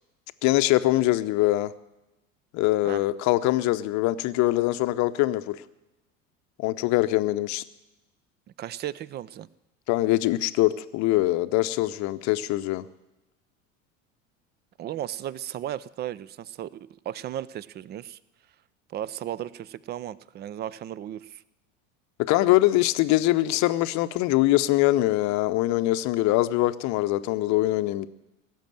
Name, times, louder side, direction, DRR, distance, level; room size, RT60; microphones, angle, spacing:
voice 1, 0.4-1.7 2.5-5.6 6.6-7.6 9.9-12.9 22.3-28.1, left 17 dB, 45° left, 13 dB, 0.8 m, -23 dB
voice 2, 8.6-9.5 14.8-18.2 18.9-21.4, right 11 dB, 25° right, 21 dB, 0.5 m, -35 dB
17.5 x 7.5 x 9.1 m, 0.99 s
figure-of-eight pair, 75°, 40 cm